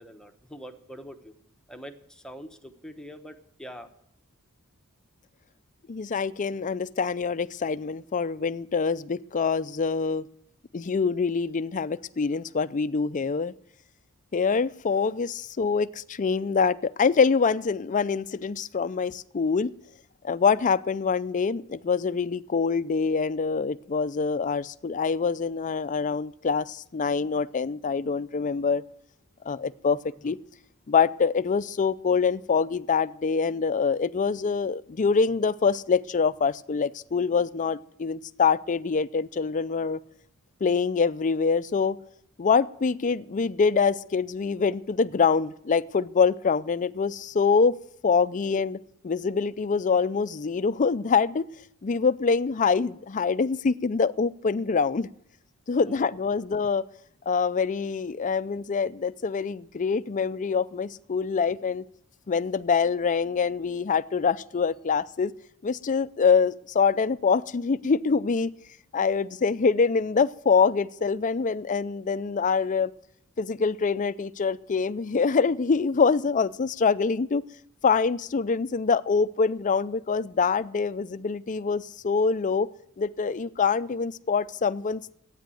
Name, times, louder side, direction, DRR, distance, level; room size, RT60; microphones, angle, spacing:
voice 1, 0.0-1.3 1.7-3.9 30.2-30.3 55.8-56.4, equal, 5° left, 5 dB, 1.0 m, -44 dB
voice 2, 5.9-10.3 10.7-13.5 14.3-19.7 20.2-28.8 29.4-30.0 30.2-30.4 30.9-40.0 40.6-42.0 42.4-47.8 48.0-48.8 49.0-51.4 51.8-55.1 55.7-56.8 57.3-61.8 62.3-65.3 65.6-68.5 68.9-72.9 73.4-77.4 77.8-82.7 83.0-85.1, left 5 dB, 35° left, 15 dB, 0.4 m, -25 dB
13.0 x 9.2 x 7.7 m, 0.72 s
head